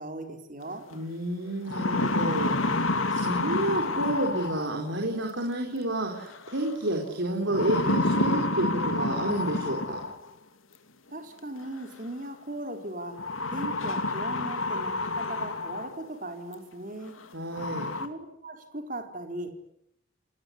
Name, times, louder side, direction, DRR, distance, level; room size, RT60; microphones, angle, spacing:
voice 1, 0.0-0.8 11.1-13.2 13.5-17.2 18.0-19.5, right 1 dB, 40° right, 5 dB, 4.4 m, -38 dB
sound 1, 0.9-1.0 1.5-4.9 6.3-6.7 7.5-10.3 11.6-11.7 13.2-16.1 16.5-16.6 17.2-17.3 17.5-18.1, left 2 dB, 75° left, 2.7 m, -29 dB
voice 2, 0.9-2.6 2.8-10.0 17.3-17.9, right 1 dB, 65° right, 1 dB, 4.5 m, -30 dB
29.5 x 20.0 x 9.7 m, 0.77 s
head